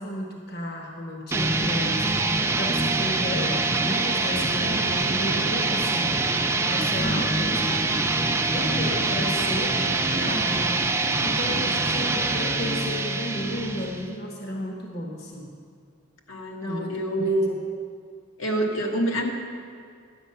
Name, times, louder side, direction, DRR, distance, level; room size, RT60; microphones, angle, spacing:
voice 1, 0.0-8.0 8.5-15.5 16.7-17.3, equal, 50° left, 0 dB, 1.1 m, -33 dB
sound 1, 1.3-14.1, right 3 dB, 15° right, 0.4 m, -24 dB
voice 2, 7.0-7.8 8.9-9.3 16.3-17.6 18.4-19.3, right 1 dB, 80° left, 1 dB, 1.4 m, -27 dB
11.0 x 8.4 x 5.7 m, 2.1 s
head